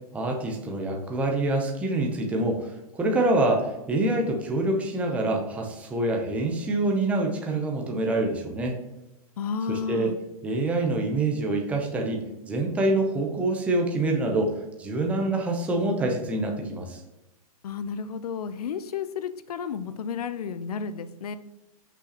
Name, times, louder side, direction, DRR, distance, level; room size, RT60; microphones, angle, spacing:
voice 1, 0.1-8.8 9.7-10.1 10.4-14.5 14.8-17.0, right 2 dB, 5° right, 2 dB, 0.7 m, -26 dB
voice 2, 9.4-10.2 17.6-21.4, left 6 dB, 85° left, 13 dB, 0.6 m, -32 dB
6.2 x 5.8 x 2.9 m, 0.95 s
hypercardioid pair, 155°, 19 cm